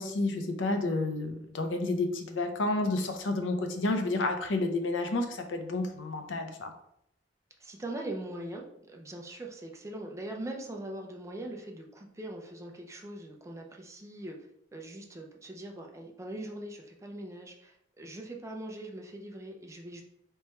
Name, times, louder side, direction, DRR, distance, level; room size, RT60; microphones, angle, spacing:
voice 1, 0.0-6.7, left 2 dB, 85° left, 6 dB, 0.6 m, -30 dB
voice 2, 7.6-14.4 14.7-20.0, right 1 dB, 15° right, 1 dB, 0.5 m, -41 dB
3.4 x 3.1 x 4.3 m, 0.75 s
head